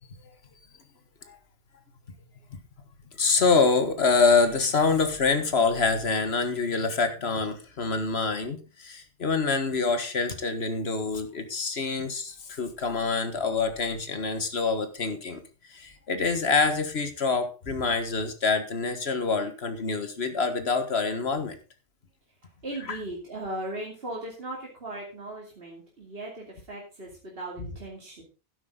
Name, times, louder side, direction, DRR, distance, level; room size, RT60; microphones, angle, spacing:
voice 1, 3.2-15.4 15.7-21.6 22.8-23.0 27.6-27.7, left 4 dB, 85° left, 8 dB, 1.8 m, -26 dB
voice 2, 22.6-28.2, right 1 dB, 70° right, -2 dB, 2.9 m, -38 dB
12.0 x 10.0 x 3.8 m, 0.33 s
omnidirectional pair, 1.0 m